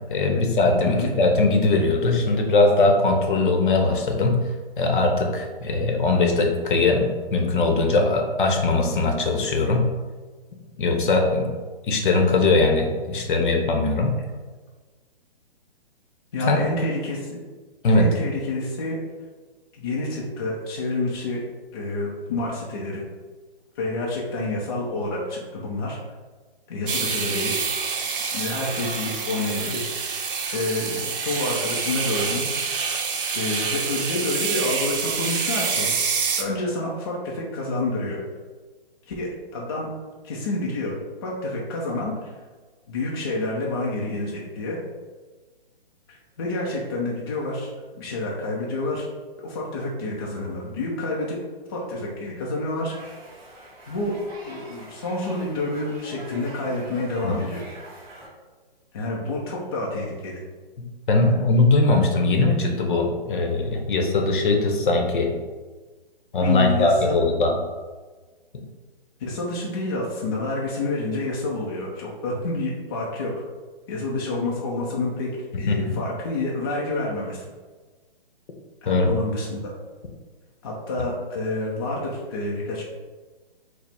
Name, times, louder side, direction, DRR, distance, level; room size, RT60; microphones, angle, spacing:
voice 1, 0.1-4.4 4.8-9.9 10.8-11.5 11.9-14.2 16.5-16.6 17.8-18.1 57.2-57.3 61.1-65.3 66.3-67.5 68.5-68.6 75.7-76.0 78.9-79.1 81.0-81.1, left 3 dB, 55° left, 2 dB, 0.7 m, -20 dB
voice 2, 16.3-17.4 17.9-19.0 19.8-21.4 21.7-23.0 23.8-26.0 26.7-27.6 28.3-29.9 30.5-32.5 33.3-35.9 36.4-38.2 39.1-39.9 40.2-42.3 42.9-44.8 46.1-49.1 49.4-51.4 51.7-52.9 53.9-54.1 54.4-57.6 58.9-60.4 66.4-67.2 69.2-73.3 73.9-77.4 78.8-79.6 80.6-82.8, left 2 dB, 25° left, -4 dB, 0.4 m, -28 dB
sound 1, 26.9-36.4, right 5 dB, 60° right, 0.6 m, -27 dB
sound 2, 52.9-58.3, right 1 dB, 10° right, 1.4 m, -44 dB
4.5 x 2.0 x 3.3 m, 1.4 s
hypercardioid pair, 145°, 30 cm